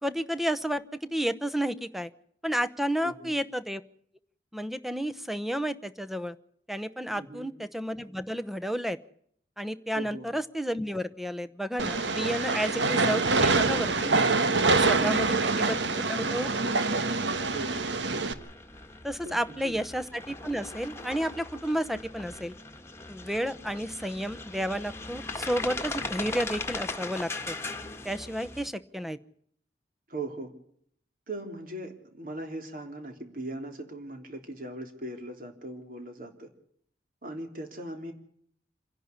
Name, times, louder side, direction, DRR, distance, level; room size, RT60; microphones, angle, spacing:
voice 1, 0.0-0.8 1.1-2.1 2.4-3.8 4.5-6.3 6.7-9.0 9.6-14.1 14.7-15.3 15.6-16.5 19.0-22.5 23.1-27.6 28.0-29.2, equal, ahead, 13 dB, 0.8 m, -31 dB
voice 2, 3.0-3.3 7.1-7.5 9.9-10.3 14.9-15.3 17.5-17.8 19.2-19.8 30.1-30.5 31.3-36.5 37.2-38.1, right 2 dB, 50° right, 5 dB, 3.4 m, -39 dB
Train, 11.8-18.3, right 3 dB, 90° right, 1.5 m, -25 dB
sound 1, 17.2-28.7, left 3 dB, 15° left, 1.7 m, -39 dB
27.0 x 11.0 x 9.7 m, 0.66 s
head